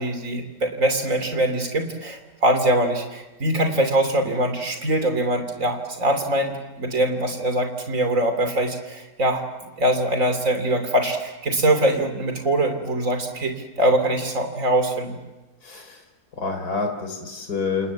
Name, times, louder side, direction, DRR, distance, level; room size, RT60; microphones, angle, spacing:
voice 1, 0.0-9.4 9.8-15.2, right 1 dB, 55° right, 7 dB, 3.5 m, -23 dB
voice 2, 15.6-16.0 16.3-17.9, left 4 dB, 75° left, 4 dB, 4.0 m, -28 dB
29.0 x 28.0 x 7.3 m, 1.1 s
omnidirectional pair, 1.6 m